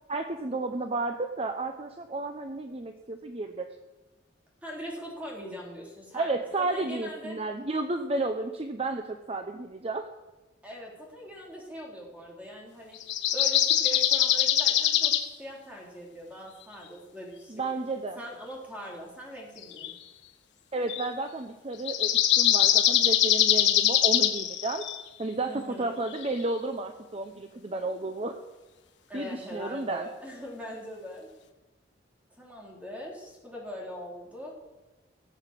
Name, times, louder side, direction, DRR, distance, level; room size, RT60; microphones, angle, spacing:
voice 1, 0.1-3.7 6.1-10.0 17.5-18.2 20.7-24.8 25.2-28.4 29.1-30.1, right 2 dB, 35° right, 6 dB, 0.8 m, -32 dB
voice 2, 4.6-7.4 10.6-13.0 13.3-17.6 18.2-19.9 25.5-25.9 29.1-31.3 32.4-34.5, equal, 10° right, -3 dB, 3.8 m, -41 dB
sound 1, 13.0-15.2 19.6-19.9 20.9-21.0 21.8-25.0 26.1-26.2, left 11 dB, 65° left, 1.5 m, -23 dB
16.5 x 8.0 x 7.5 m, 1.1 s
head